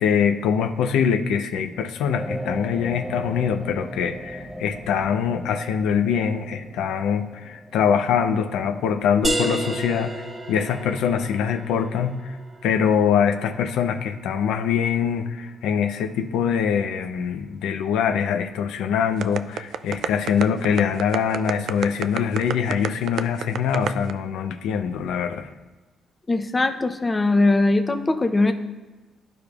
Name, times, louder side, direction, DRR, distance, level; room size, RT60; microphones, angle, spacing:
voice 1, 0.0-12.4 12.6-25.5, left 7 dB, 90° left, 8 dB, 0.5 m, -23 dB
sound 1, 2.1-9.6, equal, ahead, 0.8 m, -38 dB
sound 2, 9.2-14.6, right 1 dB, 30° right, 1.1 m, -32 dB
sound 3, 19.2-24.1, right 8 dB, 70° right, 0.3 m, -27 dB
voice 2, 26.3-28.5, left 2 dB, 25° left, 8 dB, 0.6 m, -20 dB
12.5 x 5.0 x 2.4 m, 1.2 s
cardioid pair, 90°, 0 cm